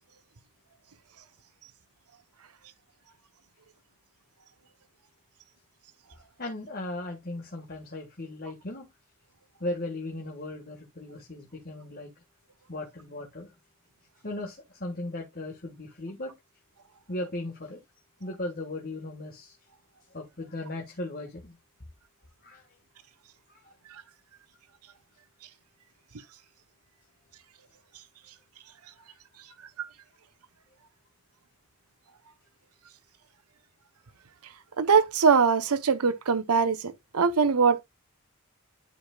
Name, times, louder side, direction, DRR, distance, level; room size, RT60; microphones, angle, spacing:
voice 1, 6.4-8.9 9.6-12.1 12.7-13.5 14.2-16.3 17.1-17.8 18.2-19.6 20.1-21.6 22.4-22.6 23.5-23.6, left 2 dB, 40° left, 1.4 m, -37 dB
voice 2, 34.8-37.8, right 5 dB, 90° right, 0.7 m, -22 dB
11.5 x 4.9 x 2.2 m
head